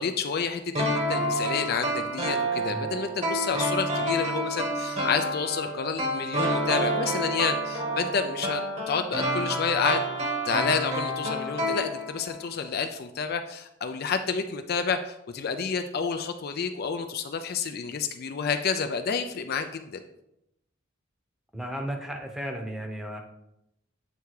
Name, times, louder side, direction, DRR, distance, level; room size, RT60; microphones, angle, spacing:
voice 1, 0.0-8.6 8.9-10.0 10.5-20.0, left 6 dB, 50° left, 7 dB, 0.4 m, -29 dB
sound 1, 0.7-12.4 12.7-12.8, right 1 dB, 35° right, 1.2 m, -29 dB
voice 2, 21.5-23.2, equal, ahead, 2 dB, 0.9 m, -34 dB
8.1 x 3.4 x 4.7 m, 0.82 s
head